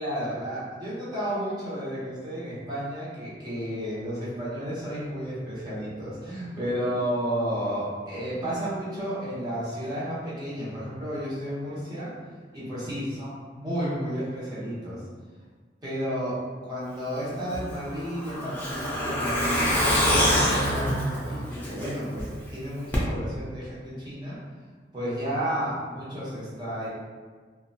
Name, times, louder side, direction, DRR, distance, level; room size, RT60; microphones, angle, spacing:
voice 1, 0.0-12.1 12.5-15.0 15.8-24.4 24.9-26.9, equal, 25° right, -9 dB, 0.8 m, -32 dB
Truck, 17.5-22.2 22.5-22.6 22.9-23.0, equal, 10° left, 0.4 m, -25 dB
2.7 x 2.2 x 2.6 m, 1.5 s
head